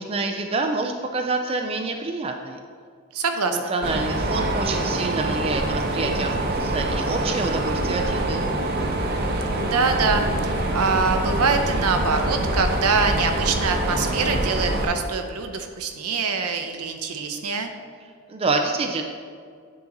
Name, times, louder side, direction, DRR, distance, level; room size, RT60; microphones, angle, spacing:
voice 1, 0.0-2.6 3.5-8.4 18.3-19.0, right 3 dB, 25° right, 4 dB, 0.3 m, -27 dB
voice 2, 3.1-3.7 9.6-17.7, right 4 dB, 85° right, 6 dB, 0.7 m, -24 dB
Mechanisms, 3.8-14.8, right 1 dB, 45° right, 0.8 m, -25 dB
9.7 x 3.9 x 3.9 m, 2.1 s
head